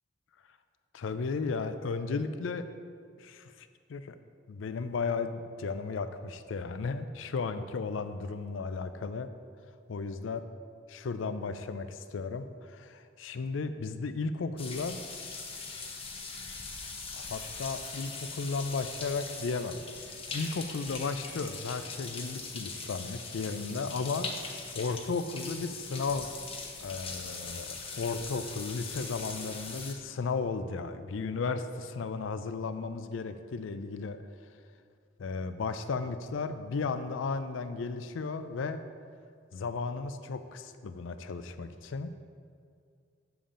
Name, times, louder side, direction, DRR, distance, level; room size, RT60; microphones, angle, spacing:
voice 1, 0.9-2.7 3.2-4.2 4.5-9.3 9.9-10.4 10.9-15.0 17.1-19.8 20.3-24.3 24.7-26.3 26.8-34.2 35.2-38.8 39.5-42.1, left 4 dB, 80° left, 11 dB, 0.4 m, -34 dB
sound 1, 14.6-29.9, left 4 dB, 30° left, 0.8 m, -41 dB
7.1 x 6.9 x 3.8 m, 2.3 s
head